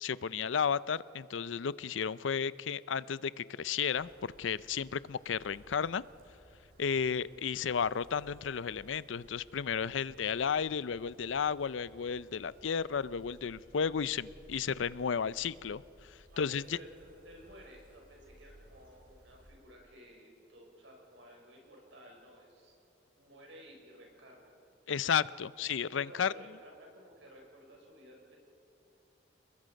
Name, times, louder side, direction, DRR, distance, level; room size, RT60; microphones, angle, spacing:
voice 1, 0.0-6.0 6.8-15.8 16.4-16.8 24.9-26.3, left 7 dB, 85° left, 18 dB, 0.5 m, -33 dB
sound 1, 3.9-19.5, equal, 50° right, 6.1 m, -60 dB
voice 2, 16.3-22.7 23.2-24.6 26.1-28.4, equal, 80° right, 0 dB, 6.3 m, -55 dB
29.5 x 21.0 x 5.2 m, 2.8 s
head